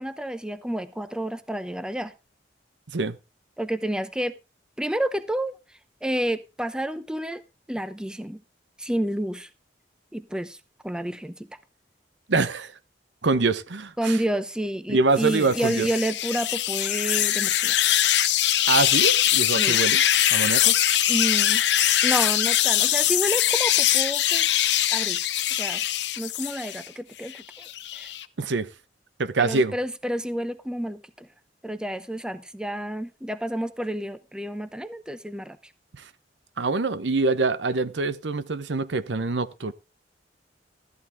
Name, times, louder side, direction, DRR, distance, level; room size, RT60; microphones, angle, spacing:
voice 1, 0.0-2.1 3.6-4.3 4.8-5.5 6.0-7.4 7.7-8.4 8.8-9.5 10.1-10.6 10.8-11.6 14.0-17.7 19.5-19.8 21.1-21.6 22.0-24.6 24.9-25.8 26.2-27.7 27.9-28.1 29.4-31.3 31.6-35.6, right 1 dB, 5° right, 0.7 m, -30 dB
voice 2, 12.3-12.7 13.2-14.2 14.9-15.9 18.7-20.0 20.3-20.7 28.4-28.7 29.2-29.7 35.9-36.0 36.6-39.7, right 3 dB, 80° right, 0.8 m, -24 dB
sound 1, 15.2-26.9 27.3-28.2, left 12 dB, 70° left, 0.8 m, -22 dB
13.5 x 11.0 x 3.6 m
head